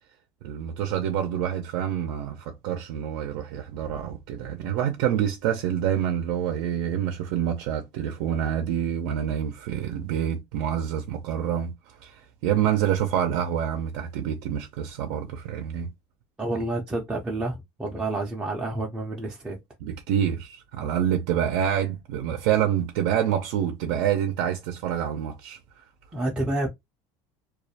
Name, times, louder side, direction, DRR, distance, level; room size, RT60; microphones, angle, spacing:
voice 1, 0.4-15.9 19.8-25.8, right 9 dB, 75° right, 0.5 m, -27 dB
voice 2, 16.4-19.6 26.1-26.7, right 2 dB, 10° right, 0.4 m, -29 dB
2.3 x 2.1 x 2.7 m
cardioid pair, 150°, 12 cm